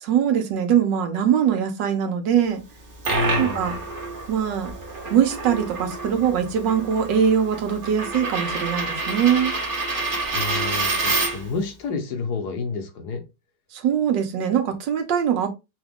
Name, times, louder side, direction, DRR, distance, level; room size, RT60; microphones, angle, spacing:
voice 1, 0.0-2.6 3.4-3.8 4.3-4.7 5.1-9.5 13.7-15.5, right 8 dB, 90° right, 1.6 m, -22 dB
Coin (dropping), 2.7-11.6, right 3 dB, 35° right, 1.0 m, -28 dB
voice 2, 3.1-3.7 10.3-13.2, left 4 dB, 70° left, 1.4 m, -29 dB
6.1 x 2.4 x 3.5 m
omnidirectional pair, 1.9 m